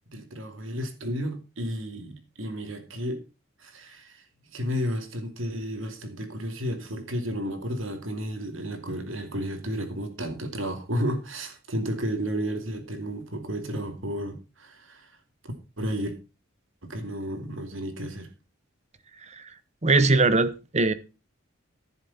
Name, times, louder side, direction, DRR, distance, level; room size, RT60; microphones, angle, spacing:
voice 1, 0.1-3.2 3.6-4.2 4.5-15.1 15.4-16.1 16.8-18.3, equal, 70° right, 2.7 m, -32 dB
voice 2, 19.8-20.9, right 3 dB, 35° right, 1.0 m, -21 dB
14.5 x 7.2 x 4.2 m
head